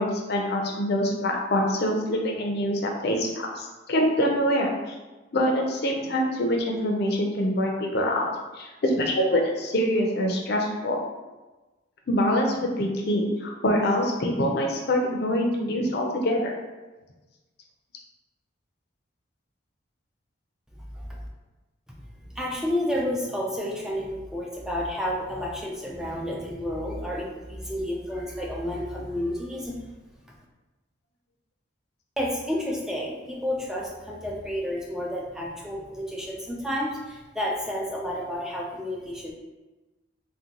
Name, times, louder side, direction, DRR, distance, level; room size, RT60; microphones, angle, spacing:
voice 1, 0.0-5.0 5.3-8.3 8.6-11.0 12.1-16.6, equal, 55° left, 1 dB, 0.5 m, -25 dB
voice 2, 21.9-29.8 30.3-30.4 32.2-39.3, left 1 dB, 5° right, -2 dB, 0.3 m, -31 dB
3.7 x 2.2 x 2.8 m, 1.2 s
head